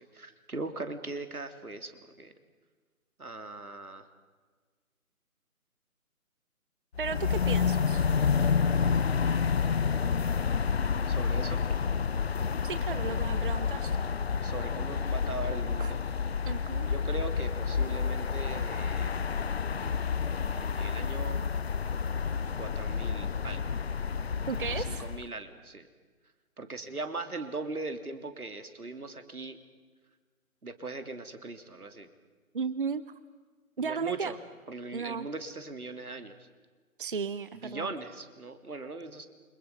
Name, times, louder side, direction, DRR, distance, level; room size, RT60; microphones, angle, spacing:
voice 1, 0.0-2.3 3.2-4.1 9.2-9.5 11.1-11.6 14.4-16.0 16.9-19.1 20.4-21.4 22.5-23.7 24.7-25.9 26.6-29.6 30.6-32.1 33.8-34.4 34.7-36.5 37.5-39.3, right 3 dB, 85° right, 8 dB, 3.3 m, -40 dB
sound 1, 7.0-25.3, left 6 dB, 45° left, 0.7 m, -29 dB
voice 2, 7.0-8.1 12.6-14.0 15.8-15.9 16.5-16.9 24.5-25.0 32.5-33.0 33.8-34.3 34.9-35.3 37.0-37.9, right 5 dB, 40° right, 14 dB, 0.8 m, -34 dB
29.5 x 27.0 x 5.4 m, 1.5 s
figure-of-eight pair, 155°, 43 cm